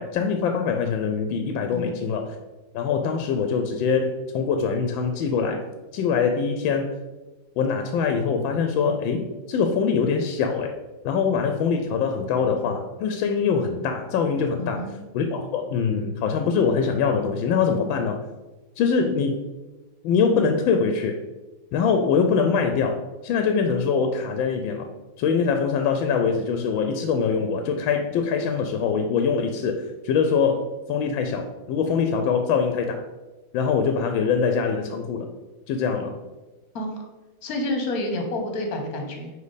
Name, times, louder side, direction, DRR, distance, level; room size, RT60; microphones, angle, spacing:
voice 1, 0.0-2.3 2.7-5.6 5.9-6.9 7.6-10.7 11.0-18.2 18.8-19.4 20.0-21.2 21.7-24.9 25.2-33.0 33.5-35.3 35.7-36.2, left 5 dB, 80° left, 5 dB, 1.3 m, -23 dB
voice 2, 14.6-14.9 36.7-36.9 37.4-39.3, left 1 dB, 55° left, 2 dB, 1.4 m, -29 dB
5.2 x 4.9 x 4.0 m, 1.2 s
omnidirectional pair, 2.1 m